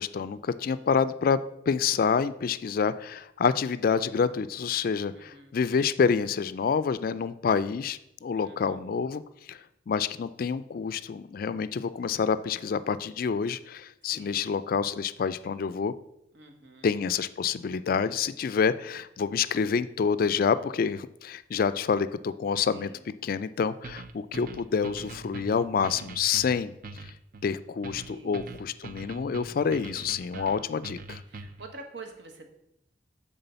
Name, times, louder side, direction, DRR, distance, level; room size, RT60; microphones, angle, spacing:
voice 1, 0.0-1.4 1.7-9.2 9.5-9.6 9.9-15.9 16.8-26.7 27.0-27.1 27.4-31.2, left 6 dB, 50° left, 14 dB, 0.3 m, -27 dB
voice 2, 5.1-5.5 8.3-8.8 14.1-14.6 16.3-16.9 22.7-23.0 28.0-28.7 30.3-30.7 31.3-32.5, right 3 dB, 65° right, 4 dB, 1.3 m, -47 dB
sound 1, 23.8-31.7, right 3 dB, 50° right, 0.5 m, -43 dB
8.1 x 3.7 x 6.7 m, 0.82 s
head